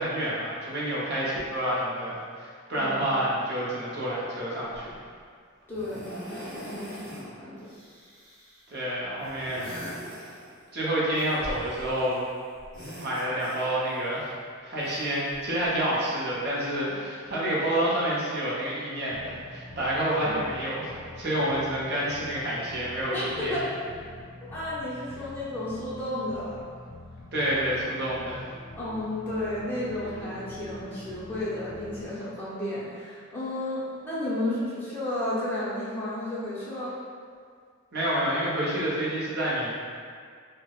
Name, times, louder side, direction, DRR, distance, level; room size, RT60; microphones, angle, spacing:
voice 1, 0.0-4.9 8.7-9.8 10.7-12.2 13.0-14.3 14.6-23.6 27.3-28.4 37.9-39.7, right 1 dB, 50° right, -7 dB, 0.7 m, -28 dB
sound 1, 4.7-5.1 5.7-7.3 7.6-8.7 9.2-10.7 11.1-12.2 12.5-14.0 14.8-15.8 16.7-16.8, equal, 15° right, 1.1 m, -43 dB
voice 2, 5.7-7.7 23.1-23.9 24.5-26.6 28.8-36.9, left 1 dB, 10° left, -10 dB, 0.5 m, -32 dB
sound 2, 19.1-32.1, left 1 dB, 55° left, 0.5 m, -46 dB
4.5 x 2.1 x 2.3 m, 2.1 s
head